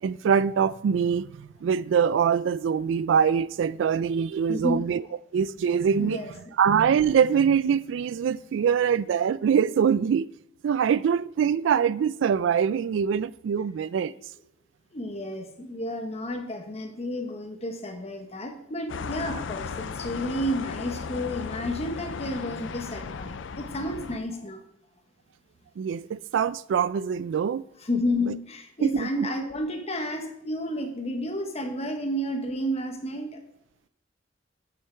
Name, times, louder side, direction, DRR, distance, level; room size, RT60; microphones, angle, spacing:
voice 1, 0.0-5.0 5.3-6.2 6.6-10.3 10.6-14.1 25.8-27.6 28.8-29.3, right 7 dB, 70° right, 0.3 m, -24 dB
voice 2, 4.5-4.8 6.0-6.5 14.9-24.6 27.8-33.4, left 1 dB, 35° left, 1.2 m, -31 dB
XY City hum Night Light traffic crossroad, 18.9-24.2, left 5 dB, 70° left, 0.5 m, -36 dB
8.4 x 6.9 x 4.5 m
head